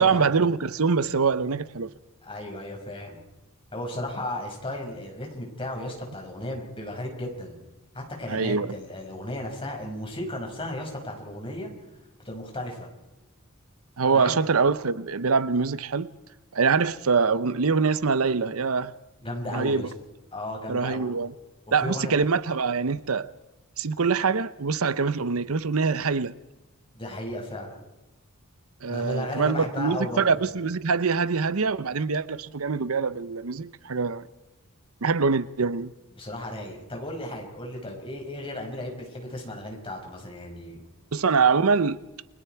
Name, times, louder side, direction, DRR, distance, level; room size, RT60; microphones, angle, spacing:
voice 1, 0.0-1.9 8.3-8.7 14.0-16.1 16.5-18.9 19.5-19.9 20.7-21.3 21.7-23.3 23.8-26.3 28.8-34.2 35.0-35.9 41.1-42.0, right 5 dB, 75° right, 0.8 m, -24 dB
voice 2, 2.2-3.2 3.7-7.6 7.9-11.7 12.2-12.9 14.1-14.4 19.2-19.9 20.3-21.1 21.8-22.1 26.9-27.8 28.9-30.3 36.2-40.8, left 1 dB, 25° left, 5.6 m, -35 dB
30.0 x 21.5 x 4.6 m
head